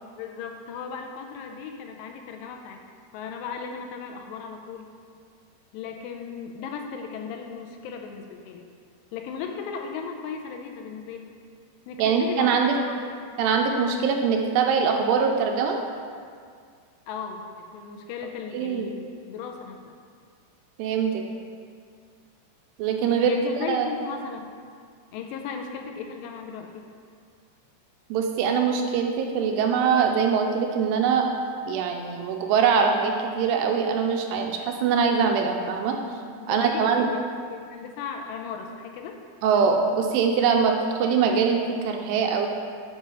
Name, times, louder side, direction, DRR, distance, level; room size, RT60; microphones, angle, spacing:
voice 1, 0.1-2.9 3.1-4.9 5.7-8.7 9.1-11.3 11.9-13.1 17.1-20.0 23.1-24.5 25.1-26.9 36.4-39.2, left 6 dB, 85° left, 3 dB, 2.6 m, -36 dB
voice 2, 12.0-12.8 13.4-15.8 18.5-18.9 20.8-21.2 22.8-23.3 23.7-23.9 28.1-31.3 31.7-36.0 36.5-37.1 39.4-40.7 41.0-42.5, right 6 dB, 85° right, 3 dB, 2.5 m, -23 dB
7.4 x 4.7 x 5.4 m, 2.1 s
omnidirectional pair, 5.0 m